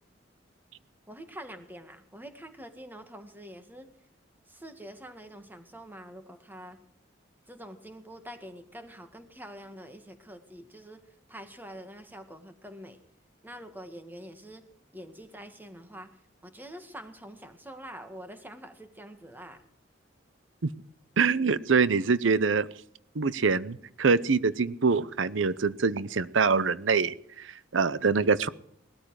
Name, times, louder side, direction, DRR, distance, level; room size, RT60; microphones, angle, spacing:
voice 1, 1.1-3.9 4.5-6.8 7.5-13.0 13.4-14.7 14.9-16.1 16.4-19.6, equal, 10° right, 7 dB, 1.9 m, -45 dB
voice 2, 21.2-22.7 23.1-28.5, right 5 dB, 85° right, 18 dB, 0.7 m, -25 dB
19.0 x 13.5 x 4.8 m, 0.66 s
head